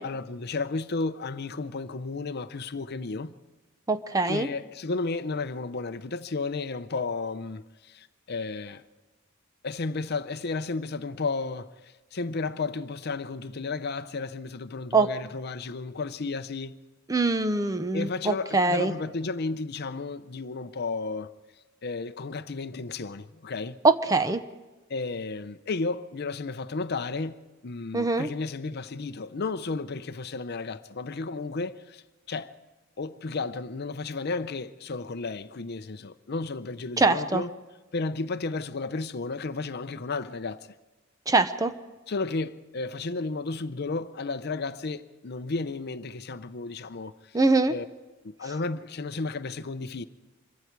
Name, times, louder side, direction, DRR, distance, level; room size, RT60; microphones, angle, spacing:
voice 1, 0.0-3.3 4.2-8.8 9.6-16.8 17.9-21.3 21.8-23.8 24.9-27.4 27.6-32.0 32.3-32.5 33.0-37.5 37.9-40.7 42.1-47.4 47.7-47.8 48.2-50.0, left 3 dB, 50° left, 0.6 m, -33 dB
voice 2, 3.9-4.5 14.9-15.1 17.1-18.9 23.8-24.4 27.9-28.3 37.0-37.4 41.3-41.7 47.3-47.8, right 3 dB, 15° right, 0.7 m, -23 dB
26.0 x 23.0 x 4.6 m
head